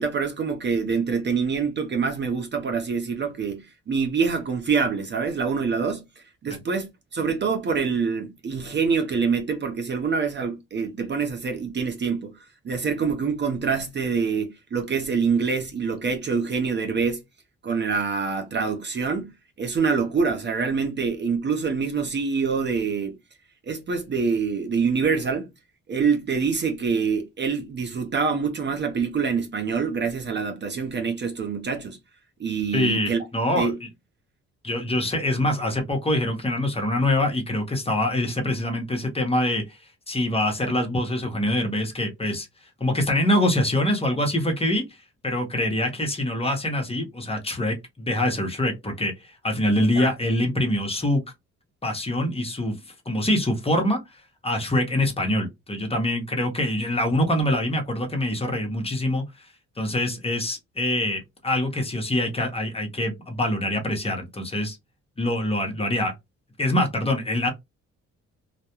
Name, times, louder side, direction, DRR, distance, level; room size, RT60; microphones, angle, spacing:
voice 1, 0.0-12.4 12.6-17.2 17.6-23.2 23.7-25.5 25.9-32.0 32.4-33.2 33.5-33.7 49.8-50.1, right 5 dB, 35° right, 0.6 m, -25 dB
voice 2, 32.7-33.7 34.6-39.8 40.1-42.5 42.8-45.0 45.2-51.2 51.8-54.0 54.4-59.5 59.8-64.8 65.2-66.1 66.6-67.5, left 1 dB, 20° left, 0.8 m, -24 dB
2.3 x 2.1 x 2.8 m
cardioid pair, 90°, 30 cm